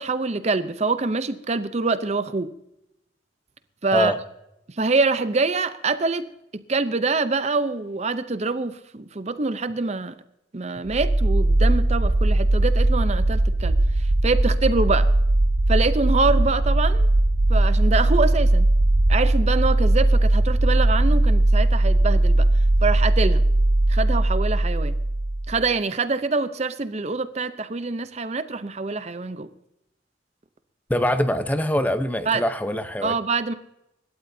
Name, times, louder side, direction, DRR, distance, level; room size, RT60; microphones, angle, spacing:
voice 1, 0.0-2.5 3.8-4.1 4.8-6.3 6.7-10.1 10.5-13.7 14.2-15.1 15.7-17.1 17.5-18.7 19.1-22.5 22.8-23.4 23.9-25.0 25.5-29.5 32.3-32.4 33.0-33.5, right 3 dB, 35° right, 12 dB, 0.6 m, -25 dB
sound 1, 10.9-25.6, right 1 dB, 70° right, 0.7 m, -19 dB
voice 2, 30.9-33.2, left 1 dB, 10° left, 10 dB, 0.7 m, -23 dB
25.0 x 12.5 x 2.7 m, 0.85 s
head